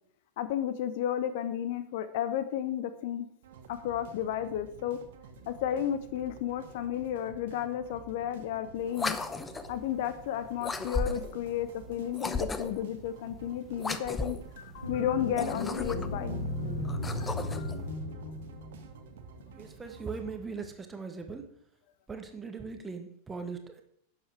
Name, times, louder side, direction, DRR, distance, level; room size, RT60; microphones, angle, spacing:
voice 1, 0.4-3.3 3.7-5.0 5.5-9.2 9.7-16.3 17.2-17.7, left 10 dB, 50° left, 12 dB, 0.8 m, -33 dB
sound 1, 3.4-20.4, right 6 dB, 55° right, 1.3 m, -51 dB
sound 2, 8.9-9.8 10.6-11.4 12.1-12.9 13.8-14.5 15.2-16.2 16.8-17.8, left 3 dB, 15° left, 0.8 m, -35 dB
sound 3, 14.8-19.1, left 1 dB, 85° left, 2.2 m, -35 dB
voice 2, 19.5-21.4 22.1-23.8, right 4 dB, 15° right, 6 dB, 1.4 m, -39 dB
11.5 x 7.5 x 4.9 m, 0.67 s
figure-of-eight pair, 90°, 0 cm